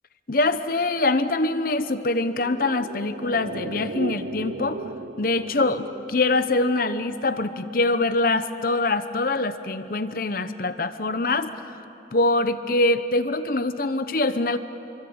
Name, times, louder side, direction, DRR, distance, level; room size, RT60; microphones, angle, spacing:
voice 1, 0.3-4.8 5.2-11.8 12.1-14.6, left 2 dB, 50° left, 10 dB, 0.9 m, -24 dB
sound 1, 2.3-6.9 7.2-7.3, right 3 dB, 75° right, 0.8 m, -36 dB
27.5 x 24.5 x 8.8 m, 2.9 s
head